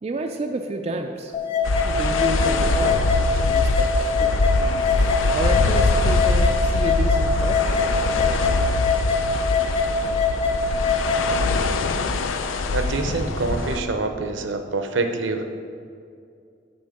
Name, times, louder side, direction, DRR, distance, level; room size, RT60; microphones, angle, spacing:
voice 1, 0.0-1.3 1.9-3.0 3.4-4.4 5.3-8.4, right 2 dB, 30° right, 4 dB, 0.3 m, -30 dB
sound 1, 1.1-13.6, equal, 70° left, 1.1 m, -42 dB
sound 2, 1.3-11.3, left 4 dB, 30° left, 0.7 m, -24 dB
sound 3, 1.6-13.8, left 3 dB, 90° left, 0.5 m, -23 dB
voice 2, 12.7-15.4, right 3 dB, 75° right, 6 dB, 0.6 m, -26 dB
8.6 x 3.8 x 6.4 m, 2.3 s
head